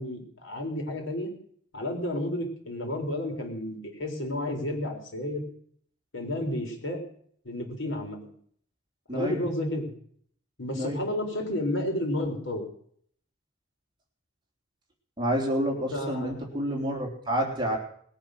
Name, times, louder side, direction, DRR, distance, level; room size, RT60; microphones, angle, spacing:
voice 1, 0.0-1.3 1.7-5.4 6.1-7.0 7.4-8.3 9.1-9.9 10.6-12.6 15.9-16.3, left 1 dB, 85° left, 2 dB, 4.2 m, -31 dB
voice 2, 9.1-9.4 10.7-11.0 15.2-17.8, equal, 25° right, 0 dB, 3.3 m, -29 dB
20.5 x 9.0 x 6.5 m, 0.62 s
head